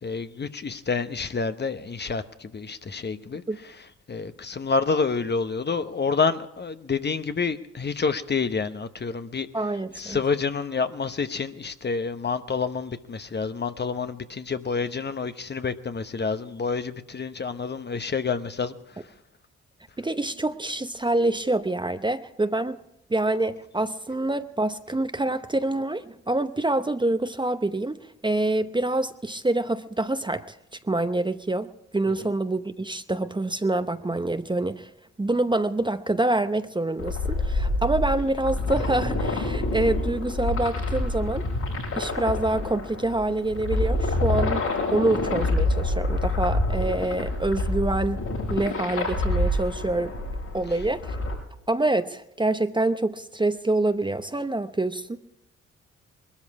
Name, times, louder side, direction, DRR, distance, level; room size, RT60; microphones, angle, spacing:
voice 1, 0.0-3.8 4.1-9.5 9.9-18.7, left 5 dB, 35° left, 1.0 m, -28 dB
voice 2, 9.5-10.2 20.0-22.8 23.1-30.6 30.8-31.7 31.9-34.9 35.2-41.4 42.0-44.6 44.9-48.2 48.5-50.1 50.5-51.2 51.7-55.2, right 2 dB, 15° right, 0.8 m, -26 dB
sound 1, 37.0-51.3, left 2 dB, 85° left, 7.4 m, -27 dB
21.0 x 13.0 x 4.8 m
supercardioid pair, 50°, 30 cm